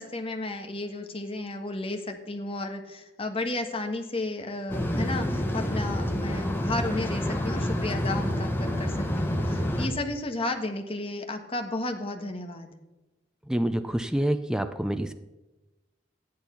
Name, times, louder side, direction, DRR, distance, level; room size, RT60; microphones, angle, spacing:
voice 1, 0.0-12.7, left 2 dB, 30° left, 6 dB, 1.4 m, -33 dB
sound 1, 4.7-9.9, equal, 10° left, 1.5 m, -28 dB
voice 2, 13.5-15.1, right 1 dB, 5° right, 8 dB, 0.6 m, -27 dB
13.0 x 10.5 x 5.7 m, 1.1 s
head